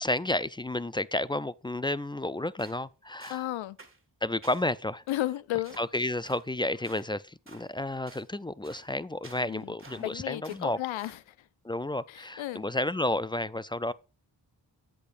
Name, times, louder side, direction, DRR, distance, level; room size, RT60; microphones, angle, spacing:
voice 1, 0.0-3.5 4.2-5.0 5.8-10.8 11.6-13.9, left 1 dB, 10° left, 0.3 m, -31 dB
sound 1, 2.6-2.8 3.2-3.5 3.8-4.0 4.4-4.7 5.1-5.3 5.6-5.9 6.2-6.5 6.8-7.1 7.5-7.7 8.1-8.3 8.6-8.9 9.2-10.1 10.4-10.7 11.0-11.2, right 3 dB, 25° right, 2.0 m, -52 dB
voice 2, 3.3-3.8 5.1-5.8 9.4-11.5 12.1-12.7, left 15 dB, 85° left, 0.6 m, -34 dB
8.6 x 8.2 x 2.5 m
cardioid pair, 50°, 46 cm